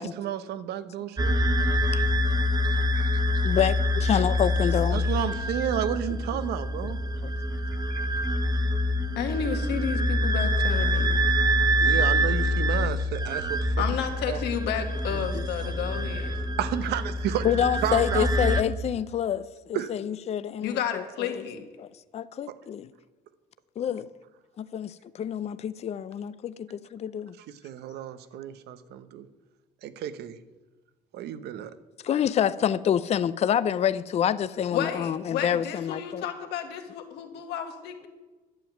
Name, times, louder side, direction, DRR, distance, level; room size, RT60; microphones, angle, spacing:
voice 1, 0.0-1.3 2.6-3.1 4.9-7.0 7.9-8.0 11.8-13.8 14.3-14.4 16.6-18.3 19.7-19.9 22.5-22.6 27.6-29.3 29.8-30.4 31.1-31.7, right 10 dB, 75° right, 0.9 m, -32 dB
sound 1, 1.2-18.6, equal, 25° right, 1.0 m, -26 dB
voice 2, 3.4-5.1 7.2-7.3 11.6-11.9 15.3-15.4 15.9-16.1 17.4-21.4 21.8-21.9 22.1-22.9 23.8-24.1 24.6-27.3 32.0-36.3, left 9 dB, 40° left, 0.5 m, -27 dB
voice 3, 9.2-11.2 13.8-16.3 20.6-21.6 34.7-38.1, left 8 dB, 85° left, 1.9 m, -32 dB
11.5 x 7.2 x 9.2 m
cardioid pair, 110°, 17 cm